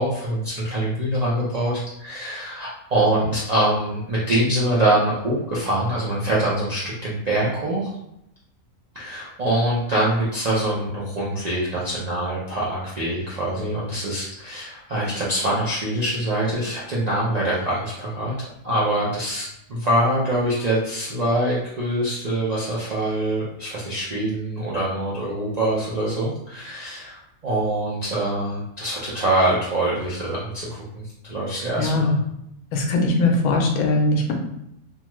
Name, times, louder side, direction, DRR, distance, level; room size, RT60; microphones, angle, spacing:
voice 1, 0.0-7.9 8.9-18.3 18.6-27.2 27.4-32.2, right 1 dB, 60° right, -7 dB, 0.4 m, -24 dB
voice 2, 31.8-32.2 32.7-34.3, left 2 dB, 85° left, 1 dB, 1.1 m, -20 dB
2.7 x 2.2 x 3.0 m, 0.78 s
omnidirectional pair, 1.5 m